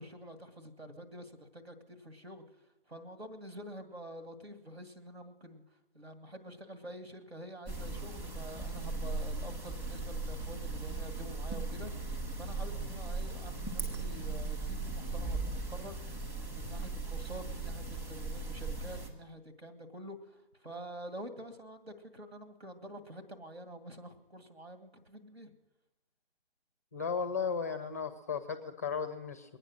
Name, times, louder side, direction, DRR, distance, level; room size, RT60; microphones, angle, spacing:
voice 1, 0.0-2.4 2.9-5.6 5.9-11.9 12.4-16.0 16.5-25.5, equal, 85° right, 8 dB, 2.2 m, -47 dB
sound 1, 7.7-19.1, right 3 dB, 5° right, 1.0 m, -38 dB
voice 2, 26.9-29.6, left 6 dB, 15° left, 11 dB, 0.5 m, -35 dB
22.0 x 9.2 x 6.3 m, 0.99 s
figure-of-eight pair, 145°, 31 cm